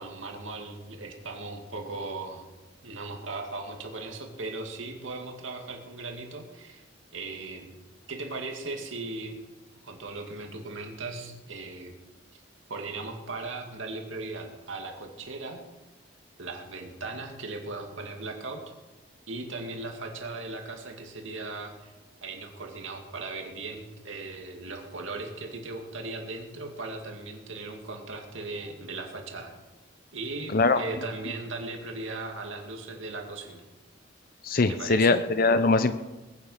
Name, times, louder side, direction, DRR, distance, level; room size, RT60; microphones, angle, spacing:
voice 1, 0.0-2.5 2.8-6.8 7.1-7.6 8.1-9.4 9.8-11.9 12.7-15.6 16.4-18.6 19.3-21.9 22.2-29.5 30.1-33.6 34.7-35.3, right 3 dB, 80° right, 2 dB, 2.3 m, -38 dB
voice 2, 34.4-35.9, left 3 dB, 45° left, 11 dB, 0.6 m, -22 dB
21.0 x 9.6 x 5.7 m, 1.1 s
head